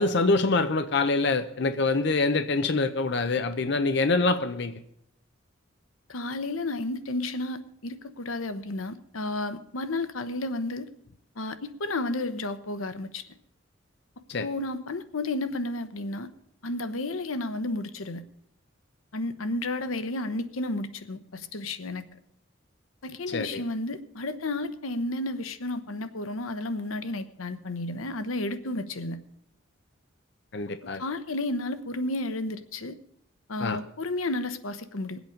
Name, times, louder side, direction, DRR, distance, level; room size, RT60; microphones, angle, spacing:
voice 1, 0.0-4.7 14.3-14.5 23.3-23.6 30.5-31.0 33.6-33.8, left 3 dB, 55° left, 0.6 m, -25 dB
voice 2, 6.1-10.9 11.4-13.2 14.4-16.3 16.6-18.2 19.1-22.1 23.0-29.2 31.0-33.0 33.5-35.2, left 2 dB, 90° left, 0.9 m, -32 dB
21.5 x 8.1 x 5.1 m
head